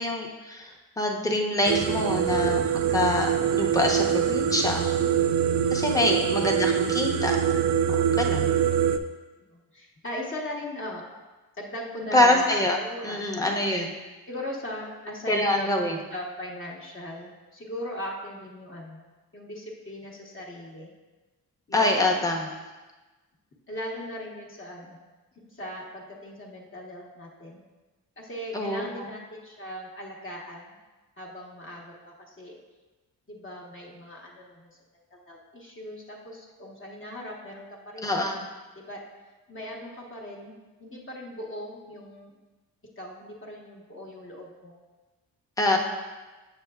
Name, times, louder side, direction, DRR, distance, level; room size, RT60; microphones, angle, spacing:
voice 1, 0.0-5.0 5.7-7.4 7.9-8.5 12.1-12.8 13.0-13.9 15.3-16.0 21.7-22.5 28.5-29.1 38.0-38.4 45.6-45.8, left 1 dB, 10° left, 1 dB, 0.9 m, -25 dB
sound 1, 1.6-9.0, right 8 dB, 50° right, 0.4 m, -24 dB
voice 2, 5.8-6.3 9.4-11.1 11.6-12.5 12.8-13.4 14.3-19.0 19.3-20.9 21.7-22.3 23.7-25.0 25.4-27.6 28.2-30.8 31.2-32.6 33.3-34.7 35.1-38.5 38.7-39.0 39.5-40.5 40.8-42.3 43.0-44.8, left 1 dB, 35° left, -3 dB, 1.1 m, -39 dB
7.7 x 6.9 x 2.4 m, 1.2 s
cardioid pair, 100°, 37 cm